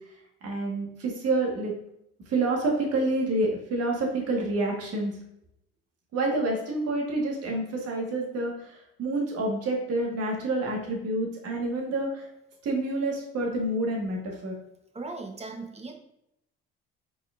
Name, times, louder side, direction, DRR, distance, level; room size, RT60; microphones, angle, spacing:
voice 1, 0.4-1.7 2.3-5.2 6.1-8.5 9.0-12.2 12.6-14.5, right 2 dB, 55° right, 0 dB, 1.5 m, -28 dB
voice 2, 14.9-15.9, right 3 dB, 20° right, 4 dB, 0.8 m, -38 dB
4.2 x 3.9 x 2.4 m, 0.81 s
hypercardioid pair, 65°, 29 cm